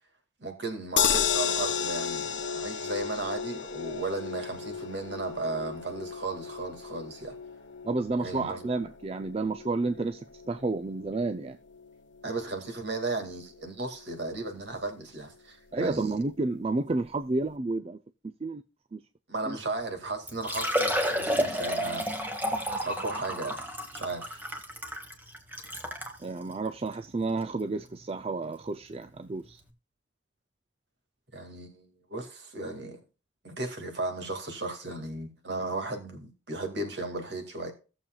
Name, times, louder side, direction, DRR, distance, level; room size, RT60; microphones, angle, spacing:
voice 1, 0.4-7.4 8.2-8.7 12.2-16.2 19.3-22.1 22.8-23.6 23.9-24.4 31.3-33.0 33.4-37.7, right 2 dB, 60° right, 2.2 m, -35 dB
sound 1, 1.0-13.2 13.6-13.7 14.0-14.1, left 7 dB, 65° left, 0.8 m, -34 dB
voice 2, 7.8-11.6 15.7-18.0 18.2-18.6 18.9-19.0 19.5-19.6 26.2-29.6, right 3 dB, 30° right, 0.4 m, -31 dB
Liquid, 19.8-19.9 20.3-26.2 26.9-27.0 27.4-27.5 29.1-29.2 29.4-29.5, equal, 10° right, 1.3 m, -31 dB
16.5 x 7.0 x 2.3 m
head